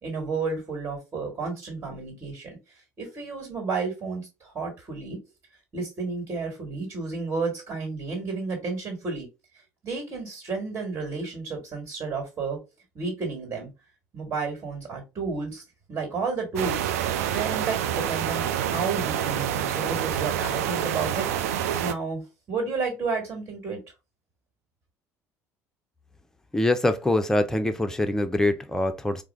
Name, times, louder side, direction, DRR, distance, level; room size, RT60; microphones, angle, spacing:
voice 1, 0.0-2.6 3.0-5.2 5.7-9.3 9.8-12.6 12.9-13.7 14.1-15.6 15.9-16.9 17.3-22.2 22.5-23.8, right 4 dB, 30° right, 1.6 m, -31 dB
sound 1, 16.6-21.9, right 10 dB, 65° right, 0.4 m, -27 dB
voice 2, 26.5-29.2, left 1 dB, 5° left, 0.5 m, -24 dB
4.6 x 2.0 x 3.3 m
figure-of-eight pair, 55°, 8 cm